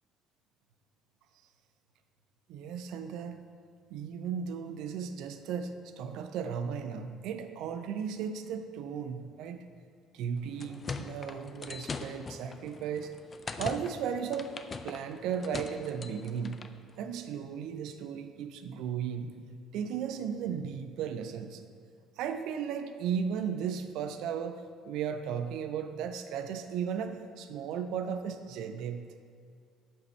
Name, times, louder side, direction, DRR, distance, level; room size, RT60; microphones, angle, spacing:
voice 1, 2.5-3.4 3.9-9.6 10.1-13.1 13.6-14.5 14.8-16.6 17.0-19.4 19.7-21.6 22.2-29.1, right 7 dB, 65° right, 8 dB, 0.4 m, -35 dB
sound 1, 10.4-16.8, left 4 dB, 35° left, 0.4 m, -42 dB
5.9 x 4.7 x 4.4 m, 2.2 s
hypercardioid pair, 55°, 0 cm